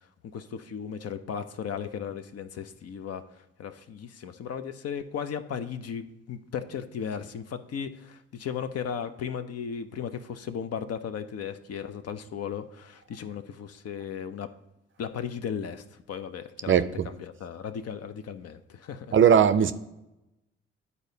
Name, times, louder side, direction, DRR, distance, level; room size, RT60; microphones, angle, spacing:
voice 1, 0.3-14.5 15.0-19.1, left 7 dB, 50° left, 0.6 m, -36 dB
voice 2, 16.7-17.1 19.1-19.7, right 8 dB, 40° right, 0.5 m, -19 dB
11.0 x 4.1 x 2.7 m
hypercardioid pair, 45°, 32 cm